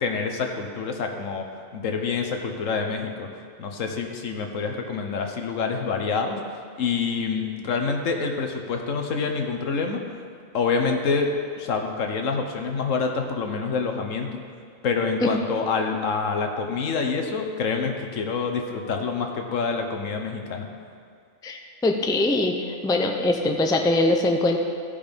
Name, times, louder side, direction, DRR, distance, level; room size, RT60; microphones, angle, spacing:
voice 1, 0.0-1.4 1.7-3.3 3.6-6.4 6.8-10.0 10.5-14.4 14.8-20.7, left 5 dB, 80° left, 4 dB, 1.3 m, -27 dB
voice 2, 21.4-24.6, left 2 dB, 5° left, 3 dB, 0.4 m, -22 dB
15.0 x 5.2 x 5.2 m, 2.3 s
omnidirectional pair, 1.3 m